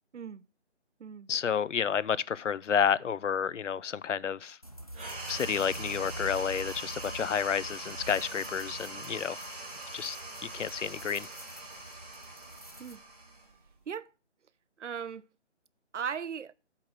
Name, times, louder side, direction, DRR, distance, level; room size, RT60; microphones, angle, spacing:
voice 1, 1.3-4.6 5.3-9.4 9.9-10.2 10.5-11.3, left 7 dB, 85° left, 0.5 m, -30 dB
sound 1, 4.6-13.0, right 1 dB, 35° left, 0.4 m, -45 dB
sound 2, 4.9-13.8, right 2 dB, 10° right, 0.8 m, -43 dB
voice 2, 14.8-15.2 15.9-16.5, right 7 dB, 80° right, 0.5 m, -37 dB
8.6 x 3.8 x 6.1 m
figure-of-eight pair, 160°, 36 cm